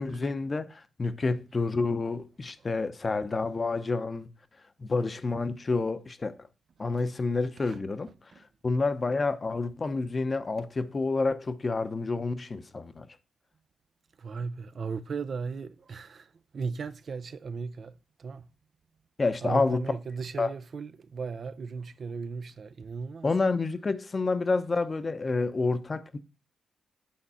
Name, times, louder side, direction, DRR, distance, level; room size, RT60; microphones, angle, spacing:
voice 1, 0.0-4.3 4.8-6.4 6.8-8.1 8.6-13.1 19.2-19.8 20.4-20.5 23.2-26.2, left 3 dB, 35° left, 0.8 m, -29 dB
voice 2, 14.2-18.5 19.4-23.3, right 5 dB, 60° right, 0.5 m, -36 dB
8.5 x 3.9 x 5.5 m
cardioid pair, 65°, 0 cm